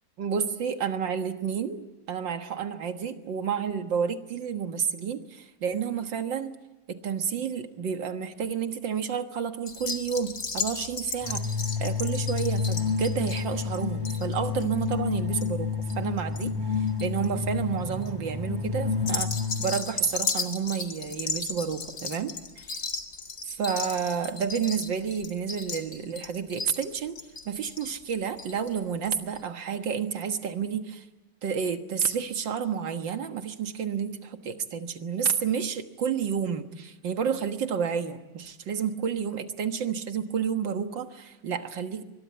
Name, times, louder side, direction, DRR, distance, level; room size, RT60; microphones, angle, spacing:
voice 1, 0.2-6.5 6.9-11.5 11.8-19.3 19.6-22.3 23.5-27.2 27.5-31.0 31.4-42.0, right 7 dB, 85° right, 7 dB, 2.2 m, -30 dB
sound 1, 9.7-16.4 16.7-17.3 17.8-18.1 18.9-28.7 29.0-29.1 29.4-29.5, left 4 dB, 55° left, 2.5 m, -35 dB
sound 2, 11.2-19.8, left 5 dB, 10° right, 2.8 m, -30 dB
24.0 x 22.0 x 9.4 m, 1.1 s
omnidirectional pair, 2.0 m